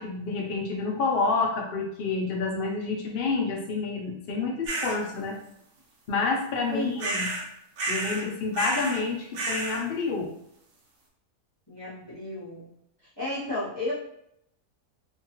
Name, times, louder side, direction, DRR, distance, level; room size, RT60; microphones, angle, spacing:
voice 1, 0.0-5.4 6.1-7.3 7.9-10.3, left 4 dB, 75° left, 1 dB, 0.5 m, -28 dB
sound 1, 4.7-5.0 7.0-7.5 7.8-8.2 8.5-9.0 9.4-9.8, right 2 dB, 65° right, 1.0 m, -30 dB
voice 2, 6.7-7.2 11.7-12.7 13.0-13.9, left 1 dB, 20° left, -11 dB, 0.9 m, -33 dB
2.8 x 2.3 x 2.9 m, 0.76 s
omnidirectional pair, 1.7 m